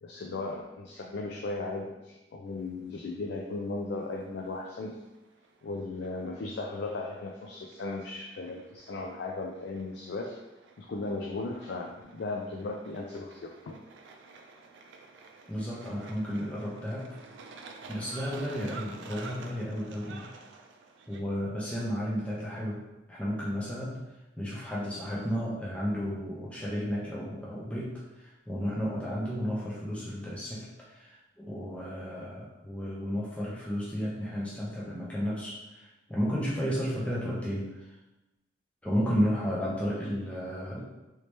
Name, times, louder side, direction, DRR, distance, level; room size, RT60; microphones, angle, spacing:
voice 1, 0.0-5.0 5.6-10.4 10.8-13.8, left 3 dB, 65° left, 1 dB, 0.4 m, -36 dB
sound 1, 2.5-21.2, right 4 dB, 80° right, 0.4 m, -51 dB
voice 2, 15.5-17.2 17.9-20.3 21.1-22.8 23.1-24.0 24.4-38.0 38.8-40.8, equal, 5° left, -6 dB, 0.5 m, -33 dB
3.1 x 2.8 x 3.3 m, 1.0 s
head